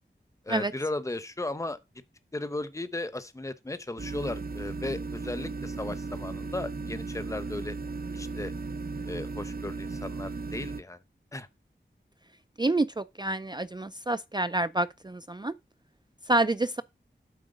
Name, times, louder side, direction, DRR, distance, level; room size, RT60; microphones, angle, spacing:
voice 1, 0.5-1.8 2.3-7.8 8.1-8.5 9.0-11.0 11.3-11.5, left 2 dB, 15° left, 0.8 m, -36 dB
sound 1, 4.0-10.8, right 3 dB, 50° right, 0.8 m, -36 dB
voice 2, 12.6-15.5 16.3-16.8, right 2 dB, 20° right, 0.4 m, -28 dB
7.9 x 4.8 x 5.0 m
wide cardioid pair, 55°, 20 cm